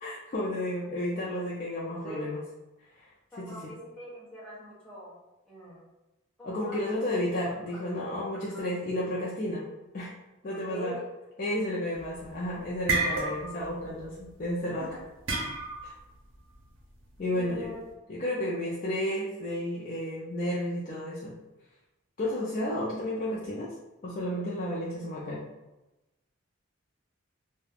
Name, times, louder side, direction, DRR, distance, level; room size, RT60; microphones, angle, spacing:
voice 1, 0.0-2.4 2.9-3.1 3.4-3.7 6.4-9.7 9.9-10.1 10.4-11.0 11.4-14.9 15.8-15.9 17.2-17.7 18.1-21.3 22.2-23.7 24.0-25.4, left 1 dB, 40° left, -6 dB, 0.4 m, -32 dB
voice 2, 1.9-2.3 3.3-5.2 5.5-5.9 6.4-7.0 7.5-7.8 8.3-8.6 10.5-11.1 14.8-15.0 17.3-17.8, equal, 5° left, -9 dB, 0.9 m, -43 dB
sound 1, 12.0-12.3 12.6-13.7 14.0-14.3 15.3-16.0, right 3 dB, 70° right, 0.6 m, -30 dB
2.3 x 2.1 x 3.3 m, 1.0 s
head